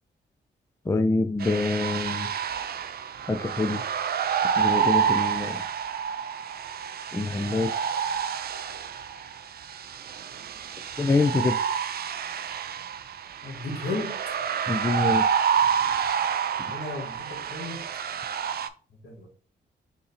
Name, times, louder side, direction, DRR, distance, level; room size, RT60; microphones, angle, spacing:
voice 1, 0.9-2.3 3.3-3.8 4.6-5.6 7.1-7.7 11.0-11.6 14.7-15.3, left 3 dB, 15° left, 8 dB, 0.4 m, -25 dB
sound 1, 1.4-18.7, right 7 dB, 55° right, 0.4 m, -28 dB
voice 2, 13.4-14.4 16.6-17.8 18.9-19.3, left 2 dB, 80° left, 0 dB, 1.7 m, -35 dB
3.9 x 2.8 x 4.1 m, 0.39 s
cardioid pair, 70°, 19 cm